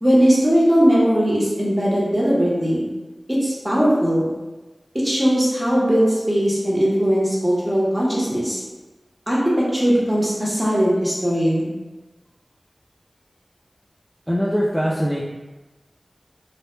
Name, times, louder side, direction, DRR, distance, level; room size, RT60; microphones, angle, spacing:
voice 1, 0.0-2.8 3.3-4.2 4.9-8.6 9.3-11.7, equal, 20° right, -6 dB, 0.8 m, -19 dB
voice 2, 14.3-15.2, equal, ahead, -6 dB, 0.3 m, -21 dB
2.0 x 2.0 x 3.0 m, 1.2 s
wide cardioid pair, 45°, 0 cm